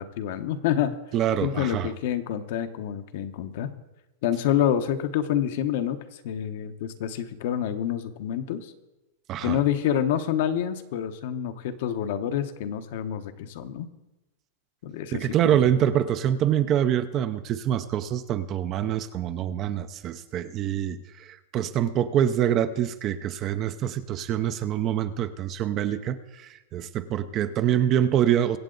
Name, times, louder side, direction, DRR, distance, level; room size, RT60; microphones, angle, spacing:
voice 1, 0.0-1.0 1.4-3.7 4.2-8.7 9.4-13.9 14.8-15.7, left 10 dB, 55° left, 8 dB, 1.0 m, -28 dB
voice 2, 1.1-1.9 9.3-9.6 15.1-28.6, right 10 dB, 25° right, 11 dB, 0.6 m, -25 dB
24.0 x 8.0 x 3.9 m, 1.0 s
supercardioid pair, 160°, 0 cm